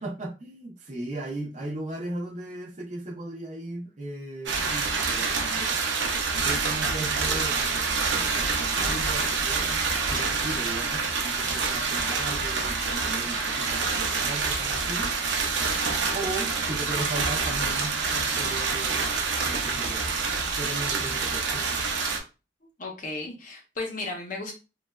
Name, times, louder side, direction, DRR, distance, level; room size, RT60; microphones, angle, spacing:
voice 1, 0.0-5.8 6.4-15.1 16.1-19.1 19.4-20.1 20.6-21.7, right 2 dB, 40° right, -2 dB, 0.6 m, -37 dB
sound 1, 4.5-22.2, right 4 dB, 80° right, 0.6 m, -27 dB
voice 2, 22.8-24.5, left 2 dB, 45° left, 2 dB, 0.6 m, -34 dB
3.1 x 2.2 x 2.2 m, 0.30 s
head